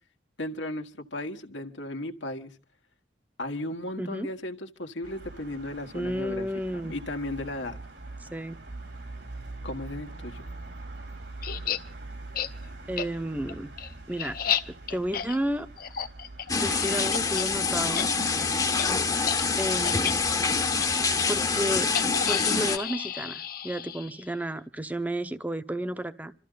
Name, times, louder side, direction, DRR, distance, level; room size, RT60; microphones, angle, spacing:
voice 1, 0.4-2.5 3.4-6.5 6.7-7.8 9.6-10.4, left 1 dB, 85° left, 5 dB, 1.6 m, -35 dB
voice 2, 4.0-4.3 5.9-6.9 8.2-8.6 12.9-13.7 14.1-14.4 14.7-15.7 16.6-18.1 19.6-20.2 21.3-21.9 22.2-26.3, equal, 10° right, 11 dB, 0.8 m, -32 dB
sound 1, 5.0-21.5, right 2 dB, 70° right, 2.9 m, -44 dB
sound 2, 11.4-11.8 12.3-12.5 13.0-13.1 13.5-17.5 17.8-18.1 18.3-18.5 18.8-18.9 19.2-19.4 19.8-20.1 20.8-20.9 21.9-24.3, left 8 dB, 55° left, 0.8 m, -32 dB
sound 3, 16.5-22.8, left 4 dB, 20° left, 0.9 m, -26 dB
26.5 x 14.0 x 3.9 m, 0.39 s
head